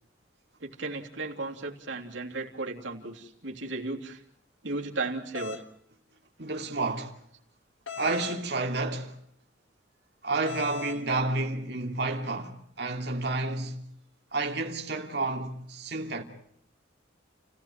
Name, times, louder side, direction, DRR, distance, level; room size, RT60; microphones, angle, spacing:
voice 1, 0.6-4.2 4.6-5.6, right 3 dB, 80° right, 3.3 m, -35 dB
sound 1, 5.3-5.6 7.9-8.4 10.4-11.0, left 7 dB, 80° left, 1.6 m, -38 dB
voice 2, 6.4-7.2 8.0-9.2 10.2-13.8 14.3-16.2, right 2 dB, 60° right, 2.8 m, -30 dB
29.5 x 16.5 x 9.2 m
head